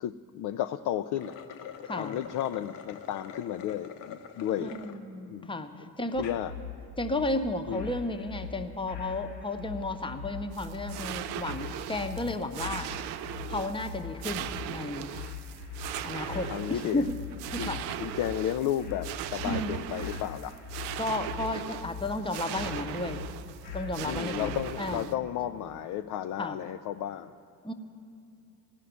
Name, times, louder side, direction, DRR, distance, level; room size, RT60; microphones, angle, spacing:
voice 1, 0.0-1.4 2.0-4.7 5.3-5.5 6.2-6.5 7.7-7.9 16.5-17.0 17.6-20.6 24.0-27.3, left 11 dB, 45° left, 8 dB, 0.4 m, -33 dB
sound 1, 1.0-5.0 5.5-5.6 6.1-6.4, left 8 dB, 60° left, 0.9 m, -44 dB
voice 2, 1.8-2.1 4.6-5.7 6.0-6.3 7.0-12.9 13.4-15.1 16.0-17.2 17.5-17.8 19.4-19.7 21.0-23.2 23.7-25.0 26.4-26.6 27.6-27.7, left 2 dB, 10° left, 7 dB, 0.9 m, -33 dB
sound 2, 6.1-24.8, left 7 dB, 80° left, 1.1 m, -42 dB
sound 3, 10.5-25.1, right 11 dB, 55° right, 0.6 m, -39 dB
17.0 x 5.8 x 9.3 m, 2.6 s
figure-of-eight pair, 45°, 48 cm